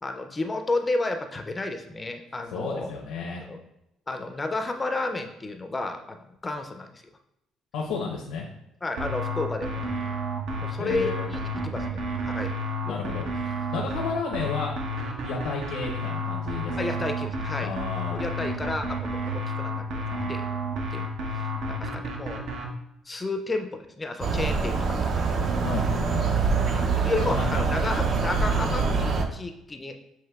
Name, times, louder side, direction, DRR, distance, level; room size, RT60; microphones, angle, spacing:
voice 1, 0.0-2.9 3.5-3.6 4.1-7.0 8.8-9.8 10.6-12.5 12.8-12.9 16.8-17.7 18.1-20.5 20.9-21.1 21.3-22.4 23.1-25.4 26.7-30.0, left 2 dB, 20° left, 6 dB, 0.4 m, -32 dB
voice 2, 2.5-3.4 7.7-8.5 10.8-11.3 12.9-13.3 13.7-14.8 15.2-17.0 17.6-18.2 25.6-26.3 27.2-27.7, left 4 dB, 90° left, 0 dB, 0.7 m, -32 dB
sound 1, 9.0-22.7, equal, 80° right, 0.7 m, -31 dB
sound 2, 24.2-29.3, right 4 dB, 50° right, 0.5 m, -25 dB
7.3 x 2.9 x 2.3 m, 0.83 s
cardioid pair, 115°, 0 cm